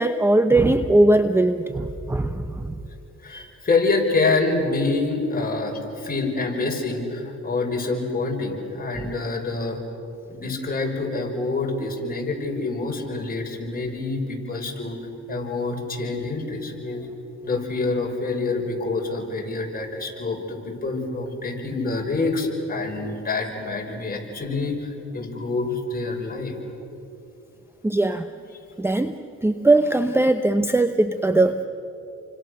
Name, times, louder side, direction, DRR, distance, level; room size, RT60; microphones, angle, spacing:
voice 1, 0.0-2.8 3.3-3.5 9.0-9.1 27.8-28.3 28.8-31.6, right 2 dB, 10° right, 10 dB, 0.8 m, -20 dB
voice 2, 3.2-9.8 10.3-15.0 15.3-17.1 17.4-26.6, left 3 dB, 30° left, 0 dB, 5.9 m, -26 dB
30.0 x 25.5 x 6.7 m, 2.8 s
cardioid pair, 90°, 30 cm